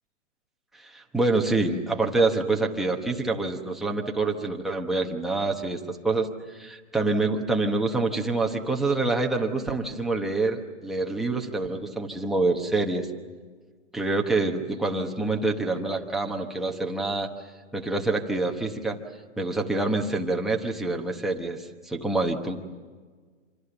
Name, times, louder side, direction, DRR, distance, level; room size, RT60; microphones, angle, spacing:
voice 1, 0.8-13.1 13.9-17.3 17.7-19.0 19.4-22.6, right 3 dB, ahead, 0 dB, 1.0 m, -26 dB
27.0 x 26.5 x 7.0 m, 1.5 s
hypercardioid pair, 160°, 38 cm